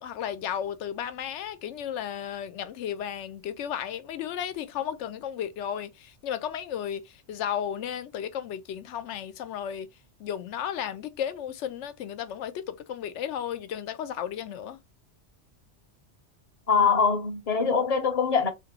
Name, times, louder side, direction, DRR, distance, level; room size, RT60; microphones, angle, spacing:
voice 1, 0.0-9.9 10.2-14.8, left 9 dB, 85° left, 0.9 m, -34 dB
voice 2, 16.7-18.5, left 5 dB, 40° left, 0.7 m, -23 dB
3.8 x 3.3 x 2.7 m
omnidirectional pair, 1.2 m